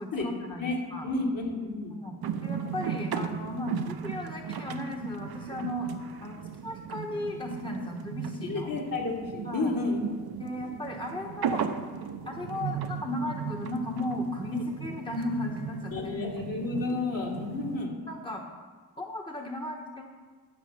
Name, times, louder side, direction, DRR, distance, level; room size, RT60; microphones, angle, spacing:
voice 1, 0.0-1.1 2.0-5.9 6.2-8.7 9.4-9.7 10.4-11.8 12.3-16.2 18.1-18.4 19.0-20.1, left 1 dB, 10° left, 1 dB, 1.1 m, -35 dB
voice 2, 1.0-2.0 8.4-10.0 10.3-10.4 15.9-18.0, left 3 dB, 55° left, -2 dB, 2.7 m, -31 dB
sound 1, 2.2-17.9, right 7 dB, 65° right, 0.8 m, -36 dB
13.0 x 4.8 x 6.8 m, 1.4 s
cardioid pair, 65°, 39 cm